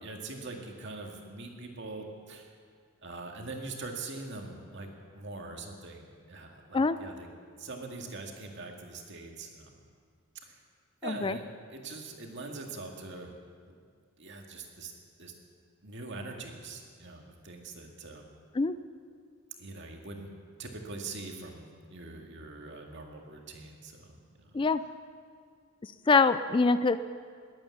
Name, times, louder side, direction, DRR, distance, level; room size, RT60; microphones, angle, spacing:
voice 1, 0.0-2.5 3.0-7.3 7.6-9.8 10.4-10.6 11.0-11.4 11.7-13.3 14.2-14.9 15.2-15.3 15.8-18.3 19.6-20.3 20.6-24.6, right 3 dB, 60° right, 2 dB, 2.1 m, -43 dB
voice 2, 11.0-11.4 18.6-18.8 24.5-24.8 26.1-27.0, left 4 dB, 25° left, 13 dB, 0.3 m, -24 dB
21.0 x 8.8 x 7.1 m, 2.1 s
head